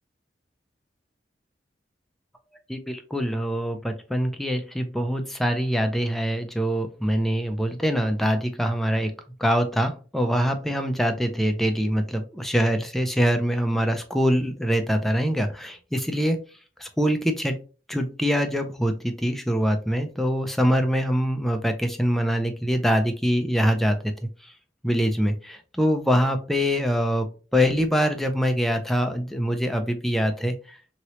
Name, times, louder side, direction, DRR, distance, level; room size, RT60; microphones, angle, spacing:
voice 1, 2.7-9.1 9.4-16.4 16.8-17.6 17.9-24.0 24.8-27.3 27.5-30.5, equal, ahead, 5 dB, 0.4 m, -24 dB
3.0 x 2.9 x 2.9 m, 0.36 s
head